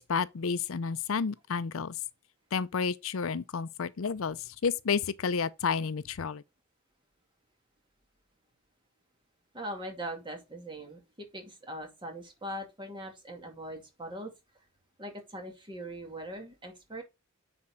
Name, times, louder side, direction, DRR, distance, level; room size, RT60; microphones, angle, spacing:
voice 1, 0.0-2.0 2.5-6.4, left 5 dB, 70° left, 0.5 m, -31 dB
voice 2, 9.5-14.3 15.0-17.0, right 1 dB, 25° right, 2.5 m, -41 dB
9.7 x 4.4 x 4.1 m
head